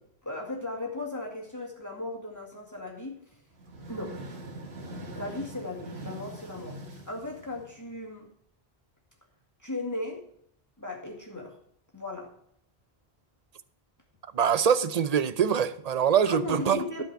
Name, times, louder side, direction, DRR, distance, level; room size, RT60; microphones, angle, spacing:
voice 1, 0.2-3.2 3.9-4.2 5.1-8.3 9.6-10.3 10.8-11.6 11.9-12.3 16.2-17.0, left 2 dB, 15° left, 2.1 m, -36 dB
sound 1, 3.5-8.1, right 1 dB, 80° right, 2.0 m, -42 dB
voice 2, 14.3-16.8, right 8 dB, 45° right, 0.6 m, -24 dB
12.0 x 5.0 x 7.7 m
omnidirectional pair, 1.1 m